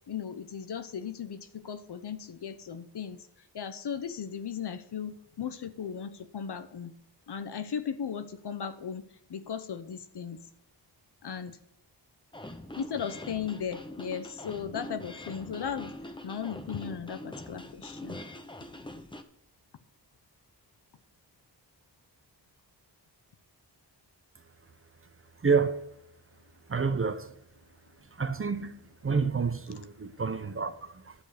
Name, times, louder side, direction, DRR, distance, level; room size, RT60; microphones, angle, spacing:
voice 1, 0.1-3.3 3.5-6.9 7.3-10.4 11.2-11.6 12.7-16.0 16.2-18.2, left 7 dB, 65° left, 0.9 m, -36 dB
sound 1, 12.3-19.2, left 1 dB, 10° left, 0.8 m, -43 dB
voice 2, 25.4-25.8 26.7-27.3 28.1-31.1, right 5 dB, 30° right, 0.8 m, -29 dB
11.5 x 7.3 x 5.0 m
wide cardioid pair, 120°, 42 cm